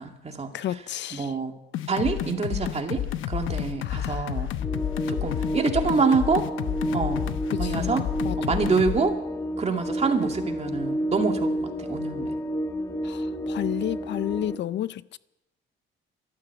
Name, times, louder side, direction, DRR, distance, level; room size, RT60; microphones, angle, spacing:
voice 1, 0.0-0.8 1.1-1.5 1.9-4.5 5.1-6.4 6.9-7.2 7.6-8.1 8.4-9.2 9.6-12.4, right 4 dB, 30° right, 2.2 m, -26 dB
voice 2, 0.5-1.3 3.8-4.4 7.5-8.7 13.0-15.2, left 12 dB, 65° left, 0.5 m, -32 dB
sound 1, 1.7-9.0, left 11 dB, 85° left, 0.9 m, -30 dB
sound 2, 4.6-14.6, equal, 15° left, 1.6 m, -30 dB
13.0 x 12.0 x 8.2 m
cardioid pair, 90°, 20 cm